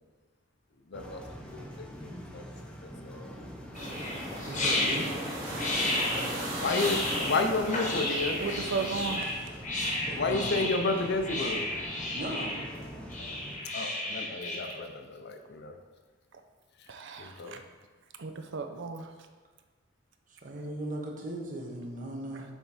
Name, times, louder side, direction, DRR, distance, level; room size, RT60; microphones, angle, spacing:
voice 1, 0.9-1.2 1.5-2.4 2.8-3.4 6.6-8.4 10.2-11.7 13.7-15.7 17.2-17.6, left 3 dB, 60° left, 5 dB, 0.6 m, -31 dB
sound 1, 0.9-13.6, equal, 5° left, 0.7 m, -44 dB
sound 2, 3.7-14.7, left 2 dB, 40° left, 1.0 m, -33 dB
sound 3, 3.7-9.2, right 1 dB, 85° right, 1.9 m, -36 dB
voice 2, 4.5-5.1 10.1-10.5 12.1-12.6 20.4-22.4, right 1 dB, 40° right, 0 dB, 1.0 m, -37 dB
voice 3, 8.4-9.5 16.9-17.6 18.2-19.1 22.3-22.4, right 4 dB, 65° right, 6 dB, 0.5 m, -35 dB
7.2 x 3.5 x 4.1 m, 1.4 s
head